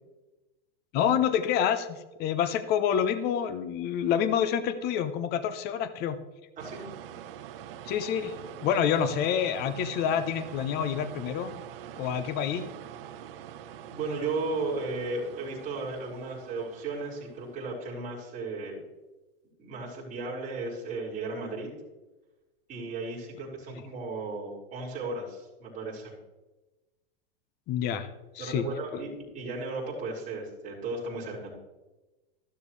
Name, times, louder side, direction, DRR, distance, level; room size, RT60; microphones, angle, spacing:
voice 1, 0.9-6.2 7.9-8.3 8.6-11.5 12.0-12.7 27.7-28.1 28.3-28.6 28.9-29.0, left 8 dB, 30° left, 12 dB, 0.8 m, -27 dB
sound 1, 6.6-17.8, right 10 dB, 65° right, 1.0 m, -45 dB
voice 2, 13.9-18.8 19.6-21.7 22.7-26.2 28.4-31.5, right 3 dB, 25° right, -5 dB, 5.2 m, -35 dB
14.5 x 12.5 x 3.2 m, 1.1 s
supercardioid pair, 140°, 30 cm